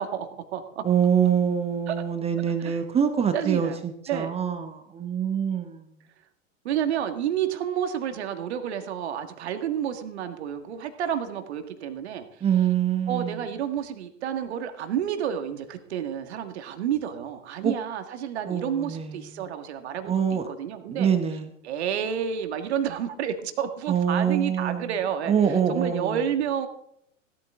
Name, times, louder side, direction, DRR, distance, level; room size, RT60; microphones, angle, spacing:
voice 1, 0.0-0.9 1.9-2.0 2.6-2.8 3.3-3.8 4.1-4.3 6.6-12.4 13.1-21.1 21.6-26.7, right 9 dB, 55° right, 7 dB, 1.8 m, -30 dB
voice 2, 0.8-5.8 12.4-13.4 17.6-17.7 18.5-19.4 20.0-20.5 20.9-21.5 23.9-24.9 25.3-26.2, right 8 dB, 15° right, 9 dB, 1.0 m, -25 dB
17.0 x 12.5 x 3.6 m, 0.77 s
figure-of-eight pair, 100°, 38 cm